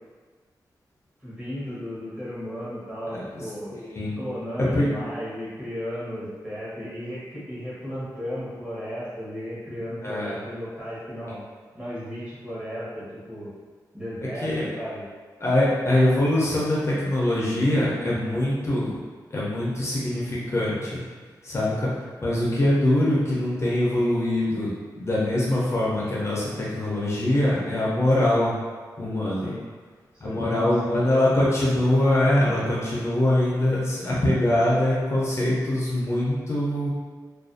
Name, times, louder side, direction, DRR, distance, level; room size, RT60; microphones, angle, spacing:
voice 1, 1.2-3.7 4.2-11.4 11.7-13.5 13.9-15.0 29.4-29.6 30.2-31.0, equal, 15° right, -9 dB, 1.0 m, -34 dB
voice 2, 3.1-3.5 3.7-4.1 4.7-4.9 10.0-10.4 11.3-11.4 14.4-14.7 15.4-18.9 19.3-21.0 21.4-28.5 29.0-29.5 30.2-36.9, left 1 dB, 40° left, -6 dB, 0.5 m, -23 dB
2.4 x 2.3 x 2.5 m, 1.5 s
wide cardioid pair, 110°, 7 cm